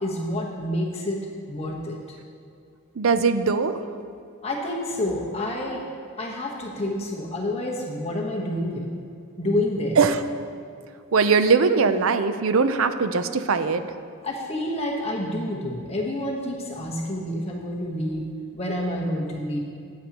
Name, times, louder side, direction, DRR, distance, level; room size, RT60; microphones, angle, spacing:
voice 1, 0.0-2.0 4.4-5.8 6.2-8.9 9.4-10.0 14.2-19.6, left 1 dB, 30° left, -1 dB, 1.1 m, -28 dB
voice 2, 3.0-3.8 10.0-10.2 11.1-13.8, right 5 dB, 75° right, 10 dB, 0.6 m, -20 dB
14.5 x 9.4 x 3.0 m, 2.3 s
head